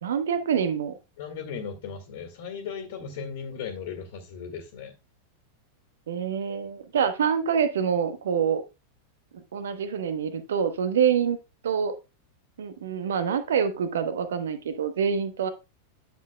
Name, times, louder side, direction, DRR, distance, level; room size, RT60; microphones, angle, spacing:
voice 1, 0.0-0.9 6.1-8.6 9.5-11.4 11.6-11.9 12.6-15.5, right 7 dB, 65° right, 10 dB, 0.9 m, -26 dB
voice 2, 1.2-4.9, left 6 dB, 55° left, 4 dB, 1.7 m, -37 dB
10.5 x 7.0 x 2.2 m, 0.27 s
figure-of-eight pair, 90°, 0 cm